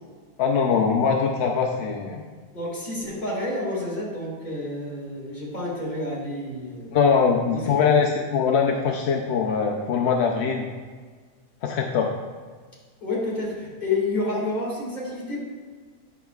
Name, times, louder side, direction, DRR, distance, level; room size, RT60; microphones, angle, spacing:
voice 1, 0.4-2.2 6.9-10.6 11.6-12.1, left 6 dB, 65° left, 1 dB, 0.6 m, -22 dB
voice 2, 2.5-6.9 7.5-8.0 13.0-15.4, left 2 dB, 30° left, -6 dB, 2.1 m, -29 dB
9.2 x 6.0 x 2.3 m, 1.5 s
omnidirectional pair, 1.6 m